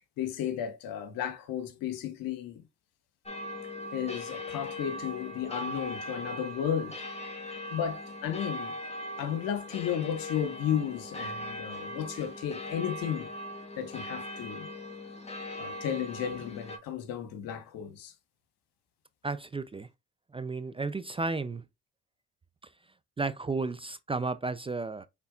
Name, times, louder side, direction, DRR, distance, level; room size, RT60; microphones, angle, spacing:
voice 1, 0.2-2.6 3.9-7.0 7.7-8.7 9.2-13.3 13.8-14.7 15.6-18.1, left 9 dB, 70° left, 1.2 m, -33 dB
sound 1, 3.3-16.8, left 1 dB, 20° left, 1.7 m, -40 dB
voice 2, 19.2-19.9 20.3-21.6 23.2-25.1, right 3 dB, 15° right, 0.4 m, -33 dB
5.8 x 3.4 x 2.4 m
hypercardioid pair, 55°, 35 cm